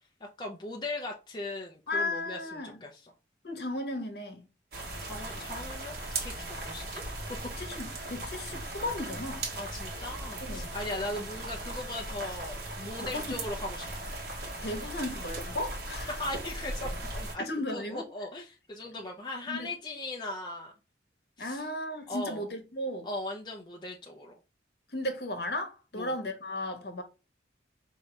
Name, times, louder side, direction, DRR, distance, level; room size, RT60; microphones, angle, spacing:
voice 1, 0.2-3.1 5.0-7.1 9.5-14.1 16.1-20.7 21.4-21.6 22.1-22.5 23.0-24.4 25.9-26.1, left 2 dB, 25° left, 0.5 m, -39 dB
voice 2, 1.9-2.8 3.4-4.4 7.5-9.4 10.4-10.7 13.0-13.3 14.6-16.1 17.4-18.0 19.5-19.7 21.4-23.1 24.9-27.0, left 1 dB, 60° left, 1.0 m, -35 dB
sound 1, 4.7-17.4, right 2 dB, 55° right, 1.2 m, -38 dB
4.9 x 2.7 x 3.2 m
head